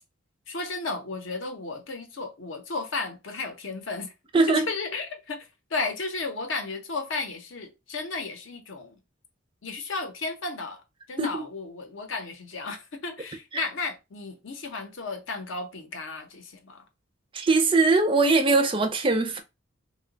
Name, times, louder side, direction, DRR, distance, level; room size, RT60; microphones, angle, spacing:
voice 1, 0.5-9.0 9.6-10.8 11.1-16.8, left 3 dB, 65° left, 0.7 m, -34 dB
voice 2, 4.3-4.6 11.2-11.4 13.5-13.6 17.3-19.4, right 3 dB, 25° right, 0.4 m, -21 dB
2.9 x 2.2 x 3.8 m
head